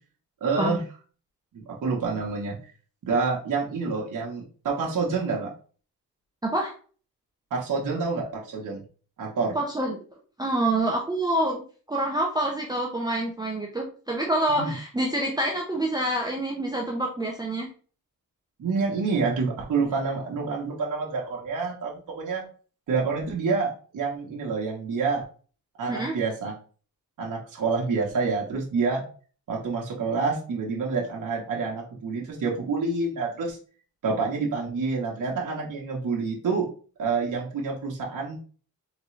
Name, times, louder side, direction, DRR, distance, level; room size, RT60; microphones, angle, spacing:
voice 1, 0.4-0.8 1.5-2.6 3.0-5.5 7.5-8.8 9.2-9.6 14.5-14.7 18.6-22.4 22.9-25.2 25.8-26.5 27.2-29.0 29.5-33.6 34.0-36.7 37.0-38.4, right 4 dB, 55° right, -2 dB, 1.2 m, -27 dB
voice 2, 6.4-6.7 9.5-10.0 10.4-11.6 11.9-17.7 25.9-26.1, right 1 dB, 10° right, -1 dB, 0.7 m, -26 dB
3.9 x 3.6 x 3.2 m, 0.40 s
wide cardioid pair, 150°, 37 cm